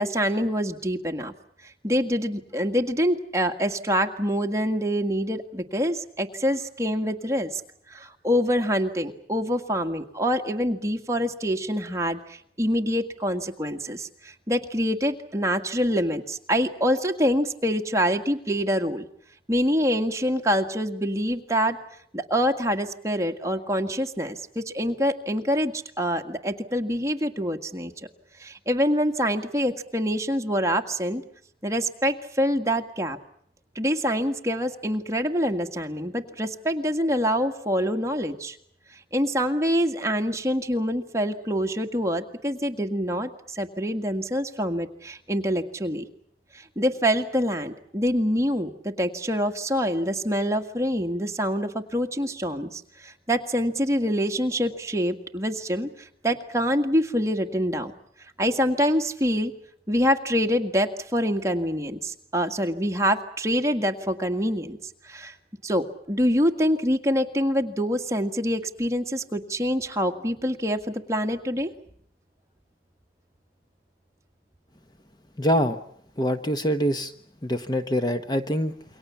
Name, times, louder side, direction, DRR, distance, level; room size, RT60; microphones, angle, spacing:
voice 1, 0.0-1.3 1.8-7.6 7.9-19.1 19.5-21.8 22.1-27.9 28.4-31.2 31.6-33.2 33.8-38.6 39.1-46.0 46.5-57.9 58.4-59.5 59.9-64.8 65.0-65.3 65.6-71.7, equal, 15° right, 4 dB, 1.9 m, -25 dB
voice 2, 75.4-75.8 76.2-77.1 77.4-78.7, equal, 25° left, 9 dB, 1.0 m, -24 dB
28.5 x 23.5 x 7.2 m, 0.68 s
head